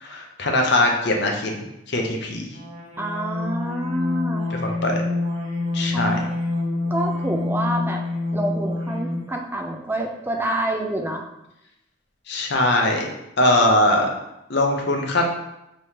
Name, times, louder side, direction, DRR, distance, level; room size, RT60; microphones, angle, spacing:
voice 1, 0.0-2.5 4.6-5.0 5.7-6.2 12.3-13.1 13.4-14.1 14.5-15.3, left 1 dB, 55° left, 1 dB, 0.7 m, -21 dB
sound 1, 2.6-9.4, left 2 dB, 30° right, 0.9 m, -27 dB
voice 2, 3.0-4.5 5.9-6.4 6.8-8.0 8.3-11.2, right 1 dB, 10° right, 2 dB, 0.3 m, -27 dB
5.0 x 3.0 x 2.9 m, 0.88 s
head